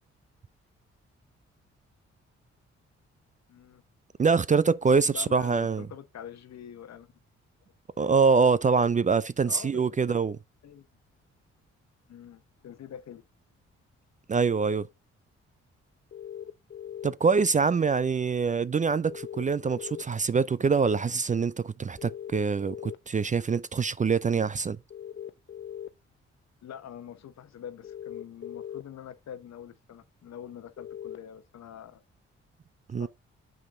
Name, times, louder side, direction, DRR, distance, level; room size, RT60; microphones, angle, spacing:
voice 1, 3.5-3.8 5.1-7.1 9.5-9.8 10.1-10.2 10.6-10.9 12.1-13.2 26.6-32.0 33.0-33.1, left 9 dB, 65° left, 1.0 m, -44 dB
voice 2, 4.2-5.9 8.0-10.4 14.3-14.9 17.0-24.8 32.9-33.1, right 5 dB, 25° right, 0.4 m, -24 dB
sound 1, 16.1-17.1 19.0-20.0 22.0-23.0 24.9-25.9 27.8-28.8 30.8-31.2, left 10 dB, 40° left, 0.7 m, -40 dB
6.9 x 5.3 x 3.6 m
supercardioid pair, 50°, 30 cm